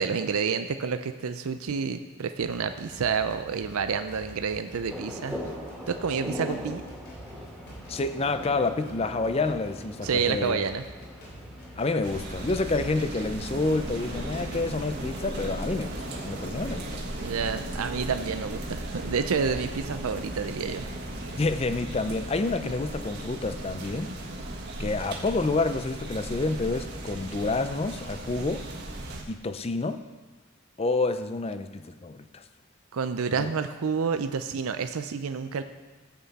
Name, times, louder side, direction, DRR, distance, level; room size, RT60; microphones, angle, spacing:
voice 1, 0.0-5.4 5.9-6.8 10.0-10.8 17.2-20.8 32.9-35.6, right 5 dB, 75° right, 9 dB, 0.5 m, -29 dB
sound 1, 2.4-21.8, equal, 50° left, 3.2 m, -47 dB
sound 2, 4.9-16.8, equal, ahead, 2.1 m, -42 dB
voice 2, 7.9-10.6 11.8-17.0 21.4-24.1 24.8-28.7 29.3-30.0 30.8-32.4 33.4-33.5, left 3 dB, 25° left, 10 dB, 0.5 m, -28 dB
sound 3, 12.0-29.2, right 1 dB, 50° right, 1.5 m, -36 dB
14.0 x 8.0 x 4.1 m, 1.3 s
head